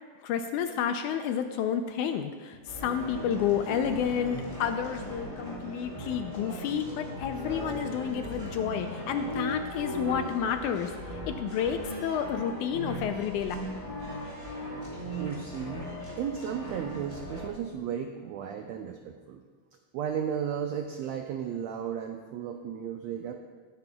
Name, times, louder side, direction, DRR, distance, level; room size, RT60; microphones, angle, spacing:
voice 1, 0.2-13.6, left 8 dB, 80° left, 7 dB, 1.9 m, -30 dB
sound 1, 2.7-17.5, equal, 10° left, 3.4 m, -38 dB
voice 2, 15.2-15.8 16.2-19.4 19.9-23.3, right 8 dB, 85° right, 4 dB, 1.5 m, -34 dB
19.5 x 9.6 x 2.3 m, 1.5 s
omnidirectional pair, 3.8 m